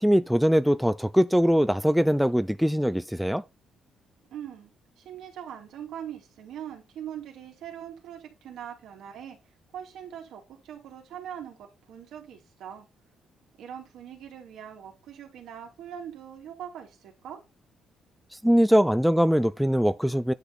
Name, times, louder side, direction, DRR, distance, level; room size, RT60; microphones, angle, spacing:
voice 1, 0.0-3.4 18.4-20.3, equal, ahead, 0.4 m, -22 dB
voice 2, 4.3-4.7 5.0-9.4 9.7-12.9 13.6-17.4, right 9 dB, 80° right, 2.7 m, -41 dB
9.9 x 4.0 x 4.1 m
cardioid pair, 90°, 0 cm